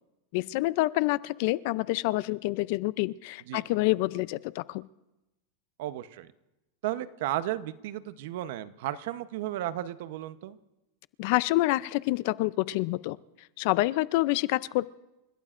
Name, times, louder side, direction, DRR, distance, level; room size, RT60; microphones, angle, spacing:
voice 1, 0.3-4.8 11.2-13.2 13.6-14.9, left 19 dB, 50° left, 18 dB, 0.5 m, -27 dB
voice 2, 5.8-6.3 6.8-10.6, right 13 dB, 65° right, 13 dB, 0.8 m, -34 dB
29.5 x 16.5 x 2.5 m, 0.97 s
supercardioid pair, 150°, 0 cm